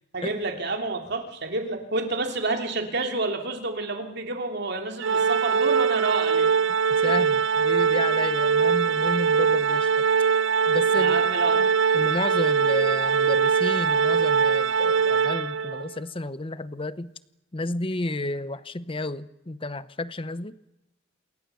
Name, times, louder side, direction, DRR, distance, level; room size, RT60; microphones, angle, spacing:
voice 1, 0.1-6.5 7.0-7.3 10.9-11.6, right 3 dB, 60° right, 5 dB, 3.0 m, -29 dB
Organ, 5.0-15.9, right 6 dB, 75° right, 0.8 m, -22 dB
voice 2, 6.9-9.9 10.7-11.2 11.5-17.1 17.5-20.6, left 2 dB, 30° left, 15 dB, 0.8 m, -32 dB
28.0 x 22.5 x 7.0 m, 0.92 s
head